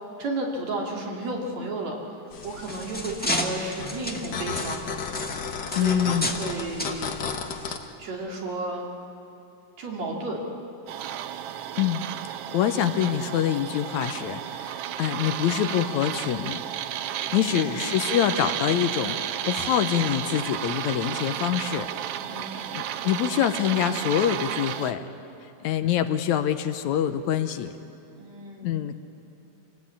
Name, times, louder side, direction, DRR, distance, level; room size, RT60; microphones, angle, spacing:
voice 1, 0.2-2.0 2.4-4.9 5.7-7.2 8.0-8.9 9.8-10.4 17.3-17.6 22.2-22.6 28.2-28.8, right 2 dB, 60° right, -1 dB, 3.8 m, -33 dB
sound 1, 2.3-7.8, left 5 dB, 60° left, 1.1 m, -34 dB
sound 2, 2.3-6.5 6.8-7.0 7.7-7.8 8.3-8.4, left 1 dB, 5° left, 0.8 m, -32 dB
voice 2, 5.8-6.3 11.8-12.0 12.3-16.6 17.3-21.9 22.5-25.0 25.6-27.7 28.6-29.1, left 10 dB, 75° left, 9 dB, 2.0 m, -25 dB
sound 3, 10.9-24.9, right 10 dB, 85° right, 1.3 m, -32 dB
26.5 x 18.0 x 8.6 m, 2.9 s
omnidirectional pair, 3.5 m